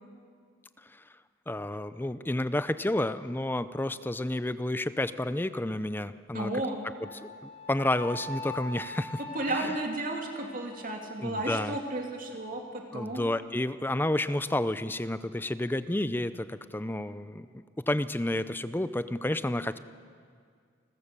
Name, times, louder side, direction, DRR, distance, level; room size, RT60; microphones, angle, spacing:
voice 1, 1.5-6.5 7.2-9.2 9.6-9.7 11.2-11.8 12.9-19.8, left 1 dB, 10° left, 13 dB, 0.5 m, -30 dB
voice 2, 6.3-6.8 9.3-13.2, right 2 dB, 45° right, 2 dB, 2.8 m, -33 dB
Wind instrument woodwind instrument, 7.0-11.4, left 2 dB, 55° left, 6.6 m, -43 dB
29.0 x 14.5 x 6.8 m, 2.1 s
head